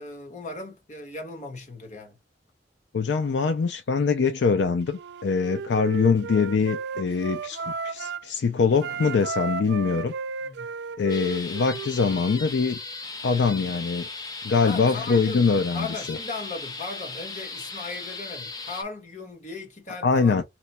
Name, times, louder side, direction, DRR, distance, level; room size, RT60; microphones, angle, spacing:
voice 1, 0.0-2.2 10.4-10.7 14.6-20.4, left 3 dB, 45° left, 1.3 m, -37 dB
voice 2, 2.9-10.1 11.0-12.8 13.2-14.1 14.4-16.2 20.0-20.4, left 5 dB, 80° left, 0.4 m, -23 dB
Wind instrument woodwind instrument, 4.9-8.3 8.7-12.4, right 5 dB, 70° right, 0.3 m, -34 dB
sound 1, 11.1-18.8, left 3 dB, 20° left, 0.6 m, -37 dB
3.0 x 2.2 x 4.2 m
head